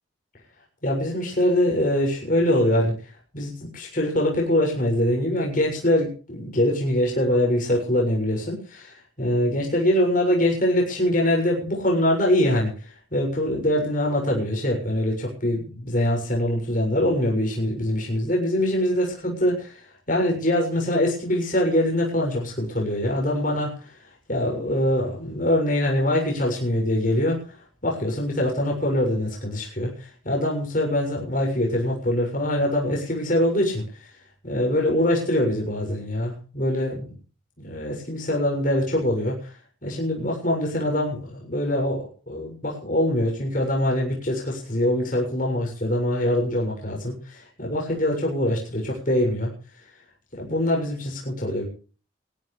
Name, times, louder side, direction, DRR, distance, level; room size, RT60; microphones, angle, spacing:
voice 1, 0.8-2.9 3.3-12.7 13.1-19.7 20.1-23.7 24.3-27.4 27.8-33.8 34.4-37.1 37.6-39.5 39.8-49.5 50.3-51.7, left 1 dB, 40° left, -1 dB, 7.0 m, -23 dB
21.5 x 16.5 x 3.3 m, 0.38 s
head